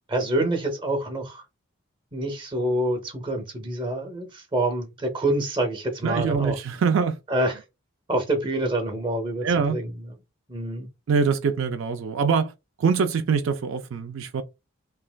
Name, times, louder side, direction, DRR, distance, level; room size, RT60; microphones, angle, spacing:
voice 1, 0.1-1.4 2.1-6.6 7.3-7.6 8.1-9.9 10.5-10.9, right 1 dB, 20° right, 0.6 m, -26 dB
voice 2, 6.0-7.2 9.4-9.8 11.1-12.5 12.8-14.4, right 5 dB, 65° right, 0.3 m, -23 dB
3.2 x 2.4 x 2.2 m
head